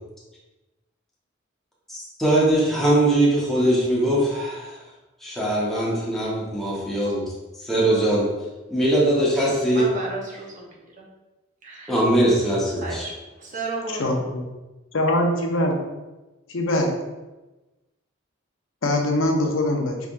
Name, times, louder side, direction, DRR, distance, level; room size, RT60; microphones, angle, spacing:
voice 1, 1.9-4.8 5.2-7.2 7.6-8.3 8.7-9.8 11.9-13.0, right 1 dB, ahead, -7 dB, 1.2 m, -21 dB
voice 2, 9.7-11.1 11.6-12.0 12.8-13.1 13.4-14.2, right 3 dB, 40° right, -2 dB, 1.0 m, -33 dB
voice 3, 14.0-14.4 14.9-15.8 16.5-16.9 18.8-20.0, left 1 dB, 75° left, 1 dB, 0.7 m, -22 dB
5.8 x 3.5 x 2.6 m, 1.1 s
head